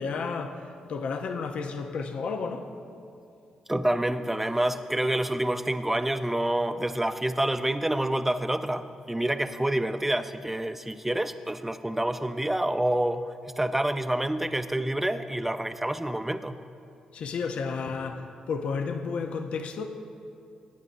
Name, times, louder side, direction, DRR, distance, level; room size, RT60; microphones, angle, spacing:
voice 1, 0.0-2.7 17.1-19.9, left 5 dB, 65° left, 0.6 m, -32 dB
voice 2, 3.7-16.6, right 1 dB, 10° right, 0.5 m, -28 dB
17.0 x 8.9 x 2.6 m
supercardioid pair, 50°, 2 cm